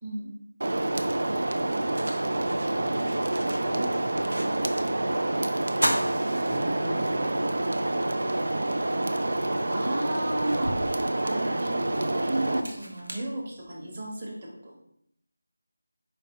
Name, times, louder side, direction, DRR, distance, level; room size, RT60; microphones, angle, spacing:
voice 1, 0.0-0.3 9.7-10.8 11.2-14.8, right 1 dB, 30° right, -4 dB, 1.1 m, -34 dB
sound 1, 0.6-12.6, right 1 dB, 60° right, 0.4 m, -27 dB
sound 2, 1.6-4.9 5.2-5.3 5.7-7.2 7.6-7.7 9.2-9.3 9.8-14.0, right 1 dB, 75° right, 0.9 m, -36 dB
voice 2, 2.7-3.2 3.6-5.3 5.8-6.0 6.4-7.6, right 1 dB, 15° right, -9 dB, 0.6 m, -39 dB
4.6 x 3.9 x 2.7 m, 0.73 s
figure-of-eight pair, 165°, 0 cm